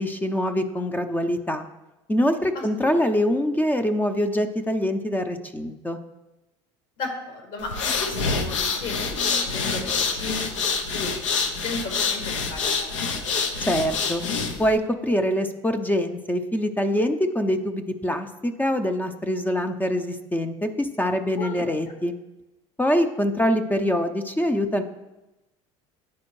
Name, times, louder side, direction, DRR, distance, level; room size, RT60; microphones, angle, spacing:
voice 1, 0.0-1.7 2.1-6.0 13.6-14.2 14.6-22.2 22.8-24.8, equal, 10° left, 8 dB, 0.5 m, -24 dB
voice 2, 7.0-9.0 9.4-10.4 10.9-11.2 11.6-13.4 21.4-21.6, left 3 dB, 65° left, 3 dB, 1.6 m, -34 dB
sound 1, 7.6-14.7, left 5 dB, 85° left, 0.6 m, -26 dB
9.6 x 4.2 x 3.1 m, 1.0 s
hypercardioid pair, 70°, 16 cm